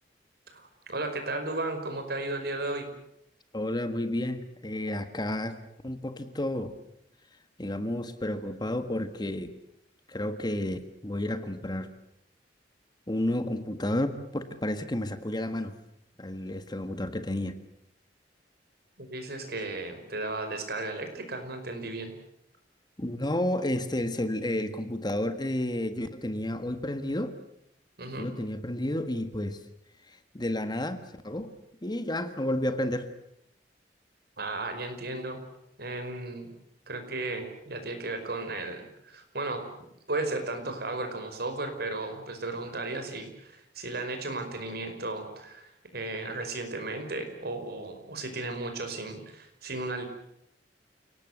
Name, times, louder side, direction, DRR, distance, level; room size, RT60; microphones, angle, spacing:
voice 1, 0.5-2.9 19.0-22.1 28.0-28.3 34.4-35.4 35.8-36.5 36.9-39.6 40.1-50.0, right 2 dB, 60° right, 6 dB, 5.2 m, -35 dB
voice 2, 3.5-5.6 5.8-6.8 7.6-9.6 10.1-11.9 13.1-15.8 16.2-17.6 23.0-27.4 28.2-29.6 30.3-31.5 31.8-33.1, left 1 dB, 25° left, 10 dB, 1.6 m, -31 dB
29.5 x 18.5 x 8.0 m, 0.78 s
head